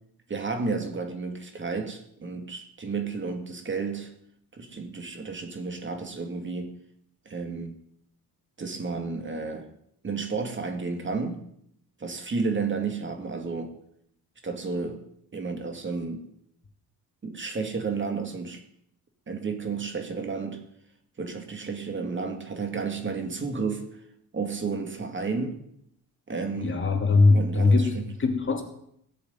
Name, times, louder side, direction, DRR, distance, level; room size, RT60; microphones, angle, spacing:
voice 1, 0.3-4.1 4.5-6.8 7.3-7.8 8.6-9.7 10.0-11.4 12.0-13.7 14.4-15.0 15.3-16.2 17.2-18.6 19.3-20.6 21.2-23.9 24.3-25.6 26.3-26.8 27.3-28.1, right 4 dB, 30° right, 5 dB, 2.3 m, -32 dB
voice 2, 26.6-28.6, left 3 dB, 30° left, 3 dB, 2.8 m, -21 dB
17.0 x 6.9 x 9.4 m, 0.71 s
cardioid pair, 120°, 38 cm